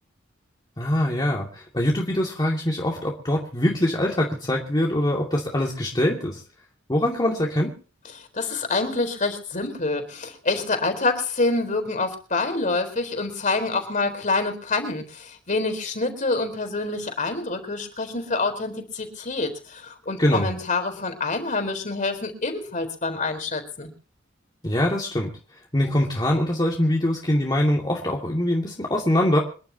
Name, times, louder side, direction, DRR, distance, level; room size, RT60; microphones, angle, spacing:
voice 1, 0.8-6.4 6.9-7.8 20.2-20.5 24.6-25.3 25.7-29.4, left 1 dB, 20° left, -2 dB, 2.4 m, -23 dB
voice 2, 8.1-23.9, left 3 dB, 40° left, 6 dB, 4.2 m, -27 dB
27.0 x 11.5 x 2.9 m, 0.39 s
head